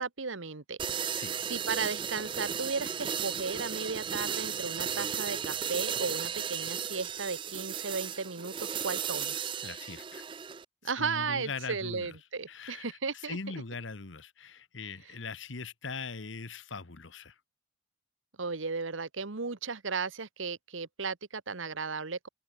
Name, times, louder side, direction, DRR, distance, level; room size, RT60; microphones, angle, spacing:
voice 1, 0.0-9.5 10.8-13.4 18.4-22.3, right 4 dB, 85° right, 1.3 m, -35 dB
sound 1, 0.8-10.6, right 8 dB, 25° right, 0.4 m, -35 dB
voice 2, 1.0-1.4 9.6-10.2 10.8-12.2 12.5-17.3, left 4 dB, 80° left, 1.3 m, -41 dB
open air
head